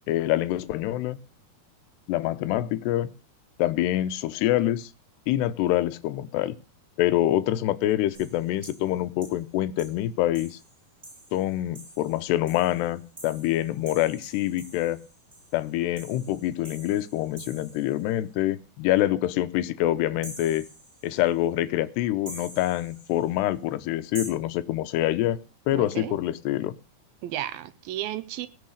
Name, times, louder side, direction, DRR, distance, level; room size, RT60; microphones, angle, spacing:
voice 1, 0.1-1.2 2.1-3.1 3.6-4.9 5.3-6.6 7.0-10.6 11.3-15.0 15.5-20.6 21.0-25.4 25.7-26.8, left 14 dB, 85° left, 3.0 m, -26 dB
sound 1, 8.1-8.9 9.2-9.4 9.8-10.0 10.3-18.1 20.2-21.3 22.3-23.3 24.1-24.3, right 1 dB, 15° right, 7.7 m, -46 dB
voice 2, 25.7-26.2 27.2-28.5, right 12 dB, 75° right, 2.3 m, -33 dB
18.0 x 6.6 x 6.5 m
omnidirectional pair, 4.7 m